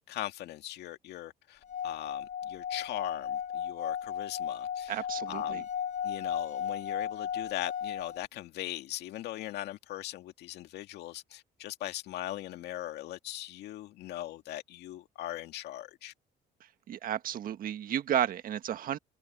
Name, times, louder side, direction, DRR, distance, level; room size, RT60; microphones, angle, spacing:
voice 1, 0.1-5.7 6.0-16.1, left 14 dB, 80° left, 2.1 m, -40 dB
Singing / Glass, 1.6-8.3, left 8 dB, 45° left, 1.1 m, -35 dB
voice 2, 4.9-5.6 16.9-19.0, right 10 dB, 55° right, 1.5 m, -32 dB
cardioid pair, 110°, 17 cm